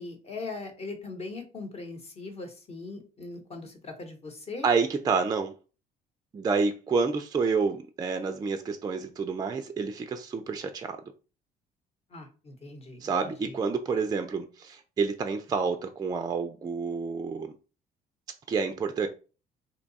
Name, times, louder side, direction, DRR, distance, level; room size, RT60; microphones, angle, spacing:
voice 1, 0.0-4.7 12.1-13.5, left 3 dB, 40° left, 1.0 m, -40 dB
voice 2, 4.6-5.5 6.3-11.0 13.0-17.6 18.5-19.1, right 5 dB, 25° right, 0.3 m, -28 dB
2.7 x 2.3 x 4.0 m
cardioid pair, 110°, 17 cm